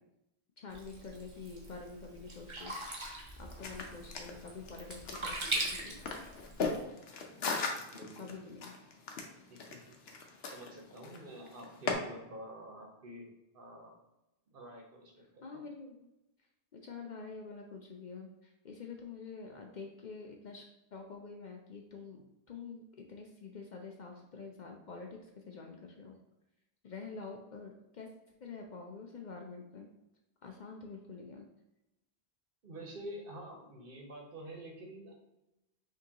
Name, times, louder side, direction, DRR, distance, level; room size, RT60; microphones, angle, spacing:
voice 1, 0.6-2.7 3.4-6.0 8.2-8.7 15.4-16.1 16.7-22.2 22.5-22.8 23.1-26.2 26.8-28.1 28.4-29.9 30.4-31.5, left 4 dB, 55° left, 1 dB, 0.6 m, -47 dB
Sink (filling or washing), 0.7-6.8, right 2 dB, 30° right, 0.8 m, -41 dB
sound 1, 3.4-11.9, left 4 dB, 70° left, 0.9 m, -39 dB
voice 2, 7.9-8.3 9.5-10.0 10.4-13.3 13.5-13.9 14.5-15.6 32.6-35.1, right 1 dB, 55° right, 0 dB, 1.1 m, -48 dB
5.9 x 2.8 x 2.8 m, 0.94 s
omnidirectional pair, 1.1 m